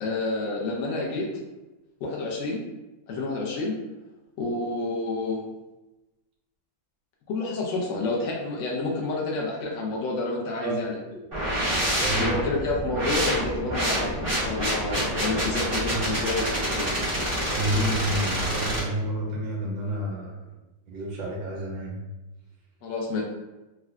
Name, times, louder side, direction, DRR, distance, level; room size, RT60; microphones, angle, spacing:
voice 1, 0.0-1.3 2.0-2.6 3.1-3.8 4.4-5.4 7.3-11.0 12.2-16.9 22.8-23.2, left 2 dB, 85° left, -3 dB, 0.7 m, -29 dB
sound 1, 11.3-18.8, equal, 30° right, 0.6 m, -27 dB
voice 2, 17.5-20.3 20.9-22.0, right 1 dB, 75° right, -3 dB, 1.6 m, -29 dB
3.8 x 2.1 x 2.3 m, 1.0 s
omnidirectional pair, 2.1 m